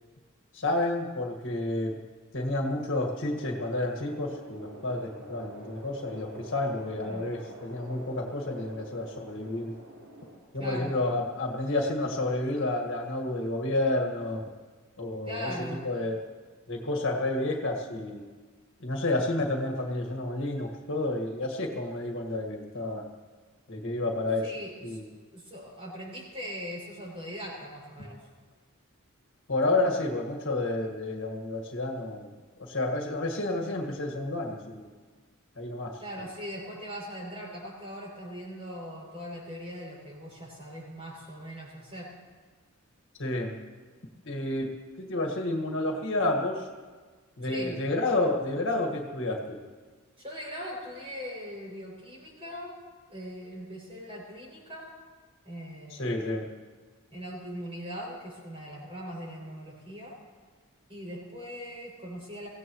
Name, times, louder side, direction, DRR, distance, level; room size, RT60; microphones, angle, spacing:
voice 1, 0.5-2.0 2.3-9.7 10.5-14.4 15.0-15.5 15.8-16.2 16.7-18.2 18.8-23.1 23.7-24.5 24.8-25.0 29.5-32.3 32.6-34.9 35.6-36.0 43.2-43.6 44.3-46.7 47.4-49.6 55.9-56.5, left 2 dB, 60° left, 1 dB, 1.8 m, -30 dB
sound 1, 3.2-10.4, equal, 70° right, 4.3 m, -47 dB
voice 2, 10.6-10.9 15.2-15.8 24.4-25.0 25.3-28.2 36.0-42.1 47.4-47.8 50.2-52.8 53.1-54.9 55.4-56.2 57.1-60.1 60.9-62.5, equal, 25° right, -4 dB, 6.5 m, -40 dB
24.0 x 16.5 x 3.1 m, 1.4 s
head